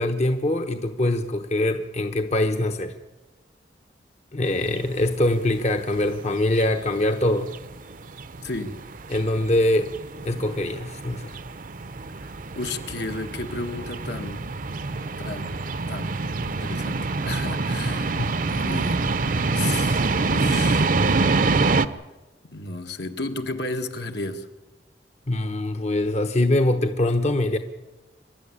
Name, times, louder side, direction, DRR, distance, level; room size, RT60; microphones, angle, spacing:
voice 1, 0.0-3.0 4.3-7.5 9.1-9.9 10.2-11.4 18.1-18.3 25.3-27.6, left 1 dB, 40° left, 7 dB, 1.0 m, -23 dB
sound 1, 4.5-21.9, right 3 dB, 50° right, 0.7 m, -26 dB
voice 2, 8.4-8.8 12.2-14.5 15.2-15.5 15.9-16.1 16.5-18.2 18.5-19.1 19.5-20.9 22.4-24.5, left 2 dB, 70° left, 5 dB, 1.7 m, -33 dB
26.0 x 12.0 x 9.9 m, 1.2 s
head